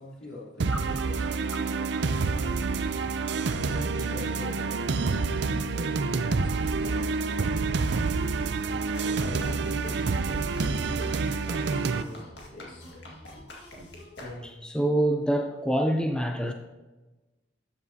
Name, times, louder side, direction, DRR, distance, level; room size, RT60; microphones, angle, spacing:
voice 1, 0.0-7.9 9.0-10.6 10.9-12.2 12.5-12.9 13.3-13.5, left 2 dB, 85° left, 3.2 m, -46 dB
sound 1, 0.6-12.0, right 4 dB, 65° right, 0.5 m, -28 dB
sound 2, 8.9-14.8, left 1 dB, 60° left, 1.9 m, -44 dB
voice 2, 14.4-16.5, right 1 dB, 5° left, 0.5 m, -26 dB
13.0 x 7.2 x 2.8 m
head